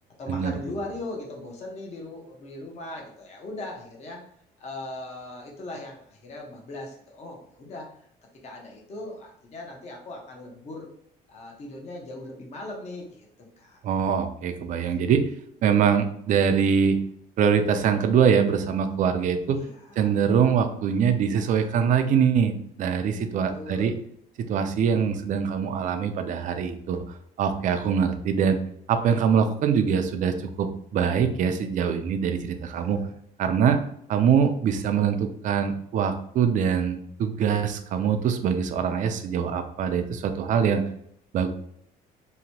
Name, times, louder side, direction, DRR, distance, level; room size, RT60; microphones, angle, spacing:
voice 1, 0.2-4.2 4.6-7.9 8.4-10.9 11.3-13.3 13.6-13.8 19.5-20.1 23.4-23.9 32.7-33.1, left 2 dB, 40° left, 0 dB, 0.7 m, -39 dB
voice 2, 13.8-15.2 15.6-17.0 17.4-19.6 20.0-23.9 24.4-27.0 27.4-28.6 28.9-33.0 33.4-33.8 34.1-40.8 41.3-41.5, right 7 dB, 50° right, 7 dB, 0.4 m, -23 dB
2.9 x 2.1 x 2.8 m, 0.68 s
cardioid pair, 110°, 17 cm